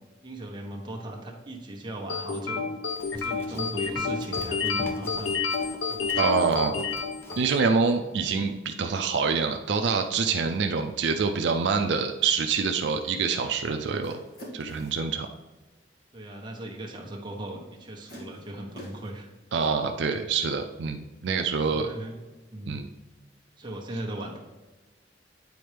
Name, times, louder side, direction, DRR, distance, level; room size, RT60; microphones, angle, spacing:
voice 1, 0.2-2.8 3.1-6.8 16.1-19.3 21.7-22.2 22.5-22.8 23.6-24.4, right 1 dB, 25° right, 0 dB, 1.0 m, -38 dB
sound 1, 2.1-7.8, left 5 dB, 80° left, 0.6 m, -30 dB
Run, 2.9-7.6, equal, 15° left, 0.6 m, -43 dB
voice 2, 6.2-6.7 7.4-14.2 14.5-15.3 19.5-21.9 22.7-22.9, right 5 dB, 75° right, 4 dB, 0.4 m, -26 dB
sound 2, 14.0-15.1 16.9-17.0 18.1-19.2, equal, 55° left, 1.9 m, -45 dB
9.3 x 4.3 x 3.4 m, 1.2 s
head